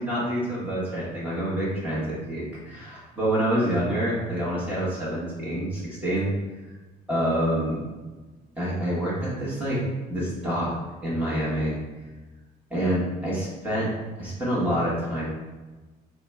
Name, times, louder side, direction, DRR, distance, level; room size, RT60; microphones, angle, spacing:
voice 1, 0.0-6.3 7.1-7.8 8.6-9.8 10.1-10.7 11.0-11.7 12.7-13.9 14.2-15.3, right 1 dB, 10° right, -9 dB, 1.2 m, -27 dB
3.9 x 2.2 x 3.4 m, 1.2 s
cardioid pair, 110°, 17 cm